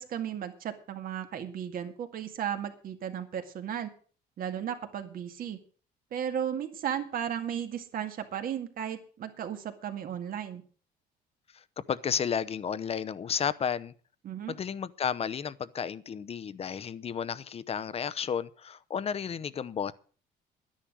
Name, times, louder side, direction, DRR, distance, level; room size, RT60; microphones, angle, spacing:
voice 1, 0.0-3.9 4.4-5.6 6.1-10.6 14.2-14.5, right 9 dB, 60° right, 2.1 m, -35 dB
voice 2, 11.9-13.9 14.5-19.9, left 7 dB, 35° left, 0.8 m, -32 dB
11.5 x 10.5 x 6.2 m
cardioid pair, 110°, 17 cm